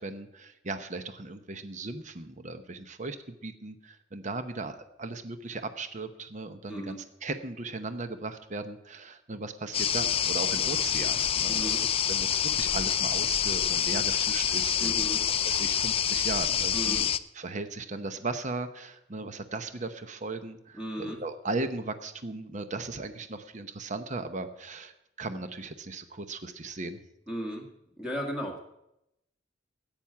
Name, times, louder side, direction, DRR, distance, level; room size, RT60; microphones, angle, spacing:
voice 1, 0.0-15.1 15.4-17.1 17.3-27.0, right 3 dB, 40° right, 9 dB, 0.9 m, -37 dB
sound 1, 9.7-17.2, left 9 dB, 30° left, 0.4 m, -27 dB
voice 2, 11.5-11.8 14.8-15.2 16.7-17.1 20.8-21.2 27.3-27.7 28.0-28.6, equal, 5° right, 0 dB, 1.8 m, -35 dB
10.5 x 8.9 x 8.5 m, 0.85 s
head